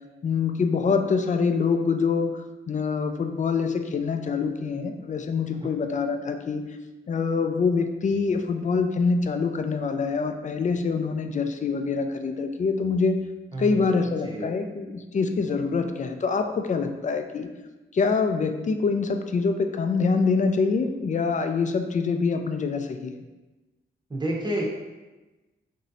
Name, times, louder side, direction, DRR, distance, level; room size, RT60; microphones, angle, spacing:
voice 1, 0.2-2.4 2.7-6.6 7.1-13.2 13.6-17.5 17.9-23.1, left 4 dB, 40° left, 6 dB, 0.4 m, -25 dB
voice 2, 13.5-14.5 24.1-24.6, right 1 dB, 20° right, -2 dB, 0.8 m, -31 dB
3.1 x 2.6 x 3.9 m, 1.1 s
cardioid pair, 80°, 20 cm